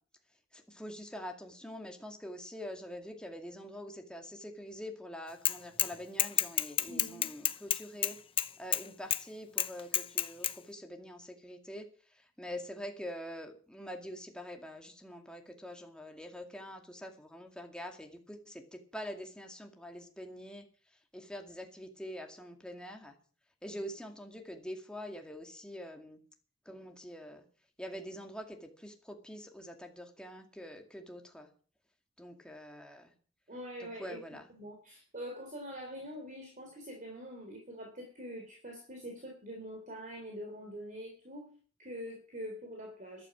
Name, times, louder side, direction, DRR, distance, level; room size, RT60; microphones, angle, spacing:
voice 1, 0.5-8.2 8.6-11.9 12.4-20.7 21.1-23.2 23.6-26.2 26.7-27.4 27.8-31.5 32.2-33.1 33.8-34.5, equal, 5° left, 3 dB, 2.3 m, -45 dB
Bicycle / Mechanisms, 5.4-5.9 6.2-8.8 9.1-9.2 9.6-10.5, left 10 dB, 25° left, 0.7 m, -29 dB
voice 2, 6.9-7.3 33.5-34.2 34.5-41.5 41.8-43.3, equal, 40° right, 3 dB, 3.6 m, -44 dB
13.5 x 12.5 x 6.2 m, 0.43 s
head